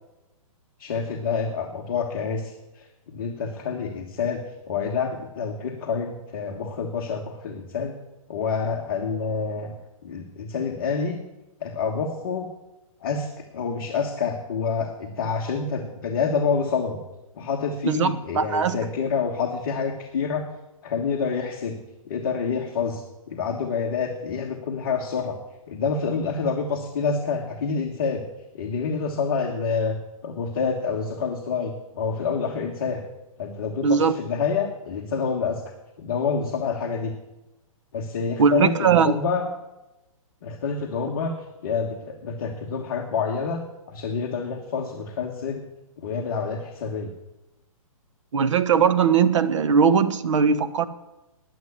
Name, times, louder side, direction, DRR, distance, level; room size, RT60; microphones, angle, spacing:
voice 1, 0.8-4.4 4.7-7.9 8.3-9.8 10.0-11.2 11.6-12.5 13.0-17.0 17.4-20.5 20.8-21.8 22.0-23.0 23.3-25.4 25.7-28.2 28.5-30.0 30.2-33.0 33.4-35.6 36.0-37.1 37.9-39.4 40.4-41.3 41.6-43.6 43.9-45.6 46.0-47.1, left 5 dB, 40° left, 1 dB, 1.3 m, -27 dB
voice 2, 17.9-18.8 33.8-34.1 38.4-39.1 48.3-50.9, right 6 dB, 55° right, 11 dB, 1.0 m, -20 dB
9.6 x 9.3 x 9.8 m, 1.0 s
hypercardioid pair, 175°, 18 cm